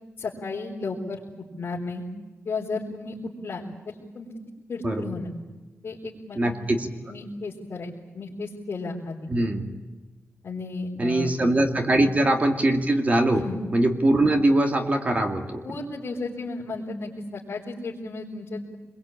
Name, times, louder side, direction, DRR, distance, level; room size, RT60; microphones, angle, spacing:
voice 1, 0.2-1.2 1.6-2.1 2.4-4.3 4.7-5.3 5.8-6.5 7.1-9.2 10.4-11.3 13.3-13.6 15.6-18.8, left 3 dB, 50° left, -4 dB, 4.1 m, -34 dB
voice 2, 4.8-5.2 6.4-6.9 9.3-9.6 11.0-13.4 13.7-15.7, right 1 dB, 30° right, 4 dB, 2.4 m, -22 dB
25.5 x 22.5 x 8.9 m, 1.2 s
wide cardioid pair, 155°, 5 cm